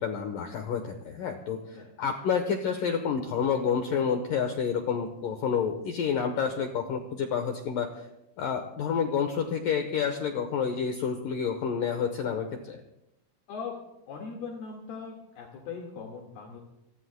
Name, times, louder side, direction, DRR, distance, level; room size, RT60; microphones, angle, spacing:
voice 1, 0.0-8.1 8.4-12.8, left 6 dB, 85° left, 5 dB, 1.9 m, -29 dB
voice 2, 14.1-16.6, left 5 dB, 60° left, 0 dB, 3.5 m, -40 dB
27.5 x 19.5 x 2.2 m, 0.86 s
omnidirectional pair, 5.5 m